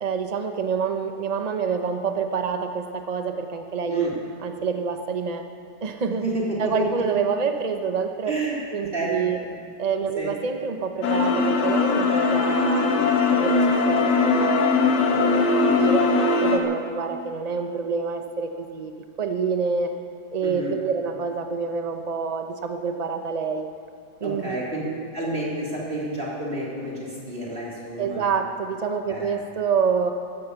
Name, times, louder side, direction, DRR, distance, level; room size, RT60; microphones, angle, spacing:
voice 1, 0.0-4.1 4.4-5.4 5.8-6.2 6.6-8.3 8.7-9.4 9.8-14.9 15.3-15.4 15.8-16.1 16.4-18.9 19.2-19.9 20.3-23.7 24.2-24.6 28.0-30.1, right 5 dB, 55° right, 5 dB, 0.4 m, -27 dB
voice 2, 6.2-6.7 8.3-8.6 8.9-9.4 10.2-10.3 15.1-15.3 15.6-15.9 20.4-20.7 24.2-24.8 25.1-28.3 29.1-29.3, right 2 dB, 30° right, -5 dB, 3.7 m, -30 dB
sound 1, 11.0-16.6, left 3 dB, 70° left, 1.9 m, -20 dB
15.0 x 12.5 x 6.8 m, 2.3 s
omnidirectional pair, 1.9 m